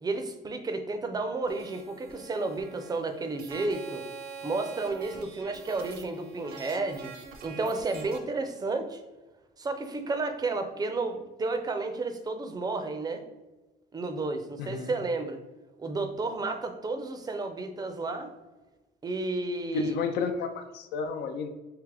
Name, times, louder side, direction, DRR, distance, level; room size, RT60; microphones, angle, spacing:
voice 1, 0.0-4.0 4.4-7.1 7.4-9.0 9.6-13.3 13.9-15.4 15.8-18.3 19.0-19.9, right 3 dB, 25° right, 7 dB, 0.4 m, -32 dB
sound 1, 1.5-8.2, right 6 dB, 70° right, 0.6 m, -45 dB
voice 2, 14.6-14.9 19.7-21.5, left 5 dB, 75° left, 7 dB, 0.5 m, -31 dB
3.3 x 2.8 x 3.6 m, 1.2 s
cardioid pair, 110°, 17 cm